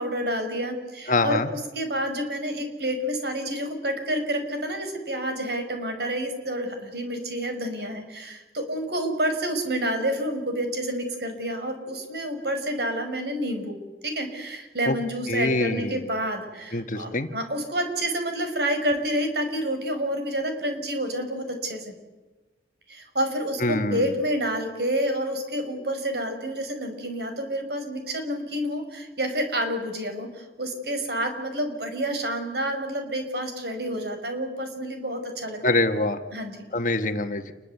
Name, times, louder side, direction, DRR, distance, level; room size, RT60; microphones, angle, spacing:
voice 1, 0.0-13.8 14.0-21.9 22.9-35.8 36.3-36.7, right 1 dB, 60° right, 7 dB, 5.9 m, -29 dB
voice 2, 1.1-1.5 14.9-15.0 15.3-16.0 16.7-17.3 23.6-24.1 35.6-36.2 36.7-37.5, left 2 dB, 45° left, 8 dB, 1.6 m, -24 dB
28.5 x 22.0 x 8.3 m, 1.2 s
head